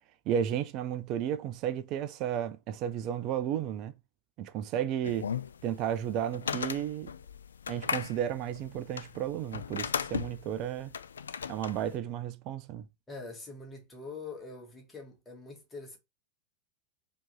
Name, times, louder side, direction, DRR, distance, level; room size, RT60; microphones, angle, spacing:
voice 1, 0.3-3.9 4.4-5.3 5.6-7.1 7.7-10.9 11.5-12.8, right 10 dB, 40° right, 0.4 m, -33 dB
sound 1, 5.0-11.9, left 7 dB, 70° left, 0.3 m, -37 dB
voice 2, 13.1-16.0, left 3 dB, 10° left, 1.8 m, -44 dB
4.4 x 2.9 x 4.0 m
figure-of-eight pair, 90°, 0 cm